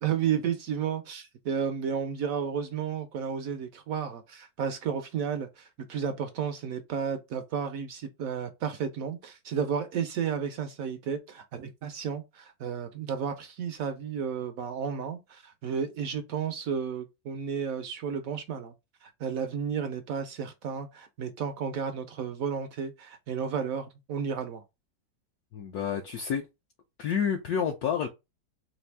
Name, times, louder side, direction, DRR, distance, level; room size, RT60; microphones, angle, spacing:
voice 1, 0.0-18.7 19.0-24.6, right 7 dB, 65° right, 0.8 m, -32 dB
voice 2, 25.5-26.4 27.0-28.1, left 7 dB, 70° left, 1.0 m, -29 dB
4.2 x 2.6 x 3.3 m
omnidirectional pair, 1.9 m